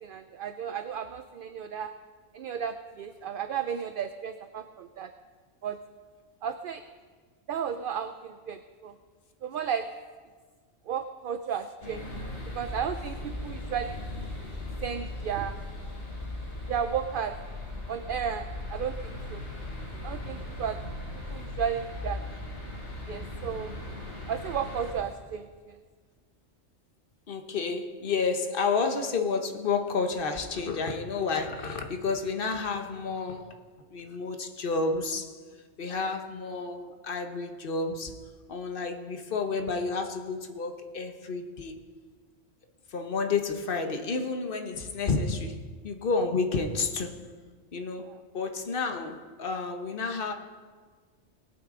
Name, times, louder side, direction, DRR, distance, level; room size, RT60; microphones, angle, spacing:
voice 1, 0.0-1.9 2.3-5.1 5.6-5.8 6.4-6.8 7.5-8.9 9.4-9.9 10.9-12.1 12.5-14.3 14.8-15.6 16.7-17.4 17.9-19.4 20.0-20.8 21.3-22.2 23.1-23.7 24.3-25.8 35.9-36.1 48.1-48.2, right 8 dB, 60° right, 9 dB, 0.6 m, -33 dB
sound 1, 11.8-24.9, left 1 dB, 65° left, 3.3 m, -38 dB
voice 2, 27.3-33.5 33.9-35.4 35.8-38.2 38.5-41.8 42.9-47.2 47.7-48.1 48.3-50.3, left 4 dB, 50° left, 6 dB, 1.1 m, -30 dB
19.5 x 9.0 x 3.7 m, 1.5 s
omnidirectional pair, 1.2 m